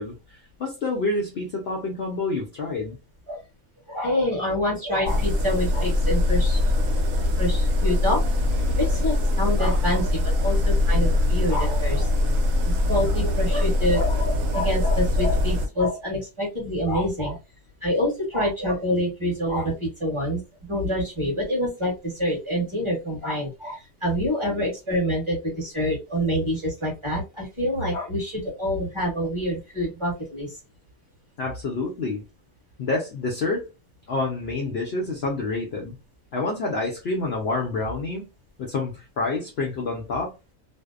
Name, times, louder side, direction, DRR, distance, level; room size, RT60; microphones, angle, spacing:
voice 1, 0.0-3.0 31.4-32.2 32.8-33.7 34.1-36.0 36.3-38.2 38.6-40.3, left 3 dB, 60° left, 0.7 m, -28 dB
voice 2, 3.9-6.6 7.4-8.2 8.8-12.1 12.6-17.4 17.8-20.4 20.7-30.5, equal, 25° right, 1.0 m, -26 dB
sound 1, 5.1-15.7, left 2 dB, 70° right, 1.0 m, -22 dB
2.6 x 2.0 x 2.3 m
omnidirectional pair, 1.5 m